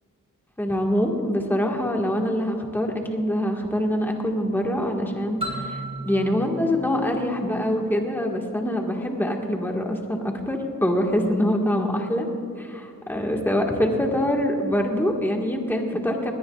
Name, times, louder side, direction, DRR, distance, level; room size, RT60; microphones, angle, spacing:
voice 1, 0.6-12.3 12.6-16.3, equal, 5° left, 1 dB, 1.6 m, -24 dB
sound 1, 5.4-8.1, right 1 dB, 15° right, 4.0 m, -35 dB
20.5 x 18.5 x 2.4 m, 2.4 s
wide cardioid pair, 100°, 33 cm